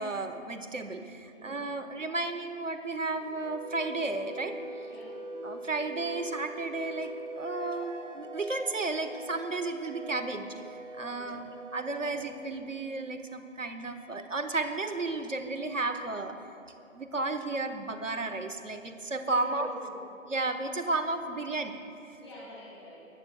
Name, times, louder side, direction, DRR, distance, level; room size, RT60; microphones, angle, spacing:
voice 1, 0.0-4.6 5.4-10.5 11.0-16.4 16.9-19.7 20.3-21.8, right 3 dB, 65° right, 9 dB, 1.1 m, -33 dB
voice 2, 1.3-1.6 4.9-5.2 11.1-11.4 19.2-19.9 22.2-23.1, equal, 20° left, -6 dB, 2.6 m, -46 dB
sound 1, 2.9-13.2, right 1 dB, 45° right, 2.5 m, -43 dB
21.0 x 14.5 x 2.2 m, 2.6 s
figure-of-eight pair, 170°, 40 cm